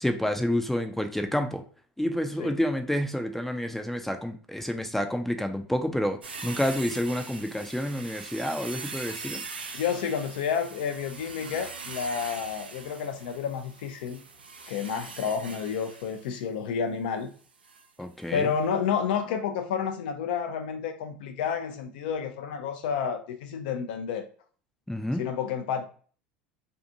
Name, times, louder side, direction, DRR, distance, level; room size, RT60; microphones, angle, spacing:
voice 1, 0.0-1.6 2.0-9.4 18.0-18.5 24.9-25.3, left 1 dB, 5° left, 0.4 m, -29 dB
sound 1, 6.2-16.4 17.6-17.9 18.2-18.3, right 4 dB, 90° right, 0.5 m, -41 dB
voice 2, 9.7-14.2 14.7-17.3 18.3-24.3 25.2-25.8, left 7 dB, 70° left, 0.5 m, -30 dB
2.6 x 2.4 x 2.7 m
hypercardioid pair, 80°, 5 cm